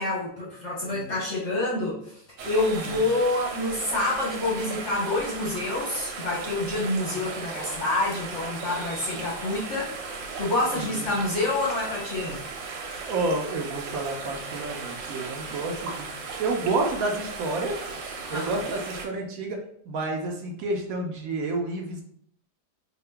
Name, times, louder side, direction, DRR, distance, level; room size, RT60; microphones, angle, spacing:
voice 1, 0.0-9.9 10.4-12.4 18.3-18.6, left 2 dB, 55° left, -4 dB, 0.8 m, -27 dB
sound 1, 2.4-19.1, right 4 dB, 85° right, 1.4 m, -36 dB
voice 2, 10.7-11.1 13.0-16.1 16.4-17.7 18.3-19.6 19.9-22.0, right 2 dB, 65° right, 2 dB, 0.9 m, -30 dB
3.7 x 2.1 x 3.3 m, 0.64 s
omnidirectional pair, 2.0 m